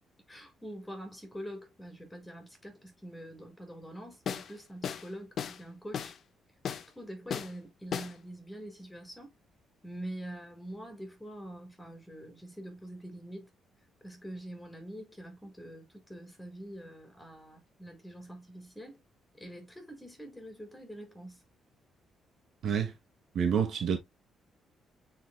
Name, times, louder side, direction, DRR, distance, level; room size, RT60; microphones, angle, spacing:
voice 1, 0.3-6.1 6.9-9.3 9.8-13.5 14.0-19.0 19.4-21.4, right 1 dB, 10° left, 5.3 m, -45 dB
sound 1, 4.3-4.5 4.8-5.1 5.4-5.6 5.9-6.2 6.6-6.9 7.3-7.5 7.9-8.1, left 8 dB, 60° left, 1.0 m, -35 dB
voice 2, 22.6-22.9 23.3-24.0, right 7 dB, 65° right, 1.8 m, -28 dB
9.4 x 5.0 x 2.2 m
cardioid pair, 90°, 0 cm